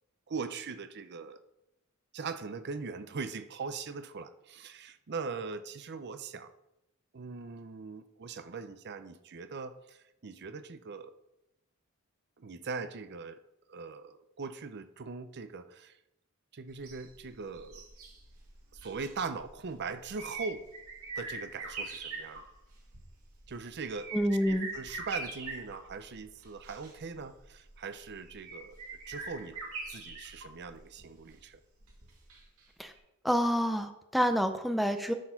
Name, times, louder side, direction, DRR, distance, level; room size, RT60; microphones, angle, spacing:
voice 1, 0.3-1.4 2.1-6.5 7.1-11.1 12.4-13.4 13.7-16.0 16.5-17.9 18.7-20.6 21.2-22.4 23.5-24.1 24.4-28.8 29.1-29.6 29.9-31.6, right 4 dB, 55° right, 11 dB, 0.6 m, -40 dB
sound 1, 16.7-32.6 32.9-33.0, right 3 dB, 90° right, 2.6 m, -44 dB
voice 2, 24.1-24.7 32.8-32.9 33.2-35.1, equal, ahead, 7 dB, 0.5 m, -28 dB
12.0 x 4.4 x 5.7 m, 0.88 s
head